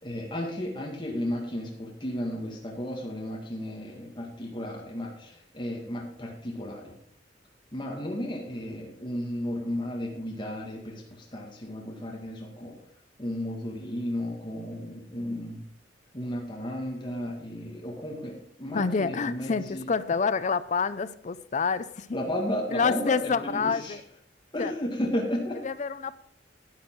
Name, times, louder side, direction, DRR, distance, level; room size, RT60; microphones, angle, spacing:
voice 1, 0.0-6.9 7.7-12.8 13.2-15.6 16.1-19.8 22.1-24.0 24.5-25.6, left 1 dB, 25° left, 1.8 m, -33 dB
voice 2, 18.7-22.1 22.7-24.0 24.6-24.7 25.6-26.2, left 5 dB, 40° left, 0.5 m, -27 dB
10.5 x 9.6 x 4.5 m
head